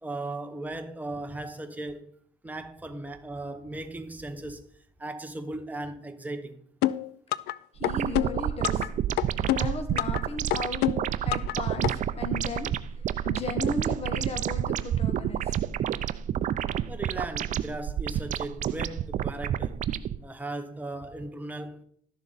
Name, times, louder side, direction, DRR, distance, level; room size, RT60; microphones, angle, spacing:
voice 1, 0.0-2.1 2.4-4.7 5.0-6.6 9.1-9.2 16.9-19.8 20.2-21.8, right 2 dB, 10° right, 0.9 m, -37 dB
sound 1, 6.8-7.5 7.8-8.9 9.2-10.2 10.5-11.5 11.8-11.9, left 14 dB, 75° left, 0.4 m, -26 dB
voice 2, 7.7-8.9 9.5-10.8 11.2-11.9 12.2-12.7 13.2-15.5, left 3 dB, 35° left, 1.4 m, -35 dB
sound 2, 7.8-20.2, right 10 dB, 50° right, 0.4 m, -29 dB
11.5 x 7.0 x 4.0 m
cardioid pair, 110°, 17 cm